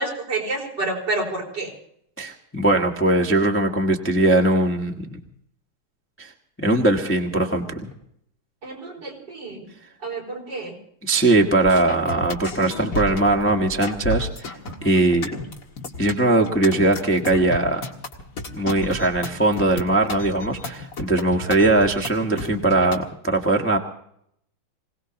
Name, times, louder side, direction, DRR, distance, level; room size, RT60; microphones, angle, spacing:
voice 1, 0.0-1.7 8.6-9.7 10.0-10.8, right 2 dB, 55° right, -1 dB, 5.4 m, -29 dB
voice 2, 2.2-5.2 6.2-6.3 6.6-7.9 11.0-15.3 16.0-17.8 18.5-23.8, right 2 dB, 5° left, 0 dB, 1.1 m, -20 dB
sound 1, 11.6-23.0, left 1 dB, 45° left, 2.1 m, -33 dB
26.0 x 18.5 x 2.9 m, 0.71 s
omnidirectional pair, 2.3 m